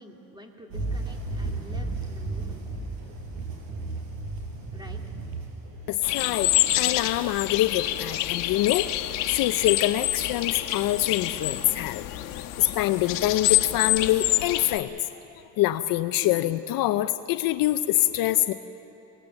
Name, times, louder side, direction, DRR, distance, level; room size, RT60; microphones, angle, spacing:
voice 1, 0.0-2.7 4.7-5.0, right 1 dB, 10° right, 1 dB, 2.4 m, -47 dB
sound 1, 0.7-7.4, right 2 dB, 60° right, 5.9 m, -34 dB
voice 2, 5.9-12.0 12.6-15.0 15.6-18.5, left 14 dB, 55° left, 11 dB, 0.6 m, -25 dB
sound 2, 6.0-14.8, left 16 dB, 85° left, 1.3 m, -27 dB
26.0 x 19.0 x 7.9 m, 3.0 s
cardioid pair, 150°, 41 cm